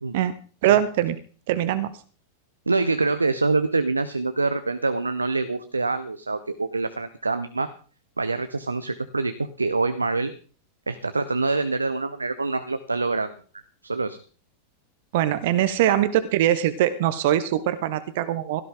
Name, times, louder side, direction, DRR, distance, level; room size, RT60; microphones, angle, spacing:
voice 1, 0.6-1.2 1.5-1.9 15.1-18.6, right 12 dB, 50° right, 13 dB, 1.2 m, -22 dB
voice 2, 2.7-7.7 8.2-10.3 10.9-13.3 13.8-14.2, right 3 dB, 80° right, 11 dB, 0.9 m, -25 dB
17.0 x 14.0 x 3.9 m, 0.40 s
figure-of-eight pair, 90°, 0 cm